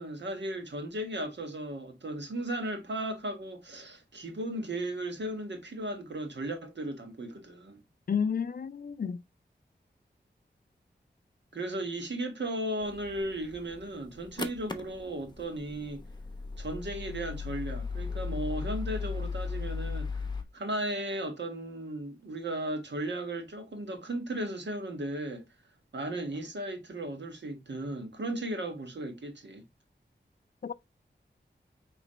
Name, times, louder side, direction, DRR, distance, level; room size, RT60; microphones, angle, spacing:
voice 1, 0.0-7.8 11.5-16.0 16.6-20.2 20.5-25.4 25.9-29.6, right 1 dB, 70° right, 1.4 m, -36 dB
voice 2, 8.1-9.2 30.6-30.7, left 6 dB, 50° left, 0.4 m, -31 dB
sound 1, 12.8-20.4, left 4 dB, 25° left, 0.8 m, -37 dB
5.0 x 3.1 x 3.1 m
cardioid pair, 45°, 19 cm